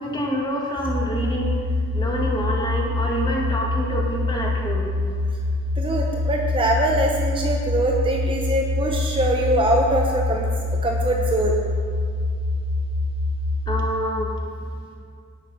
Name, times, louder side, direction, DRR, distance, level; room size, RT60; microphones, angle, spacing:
voice 1, 0.0-1.5 1.9-4.9 13.7-14.3, equal, 20° left, -3 dB, 2.0 m, -26 dB
sound 1, 0.8-13.8, left 2 dB, 75° right, 3.7 m, -25 dB
voice 2, 5.8-10.5 10.8-11.6, right 1 dB, 25° right, 0 dB, 1.0 m, -22 dB
17.5 x 6.5 x 5.7 m, 2.3 s
head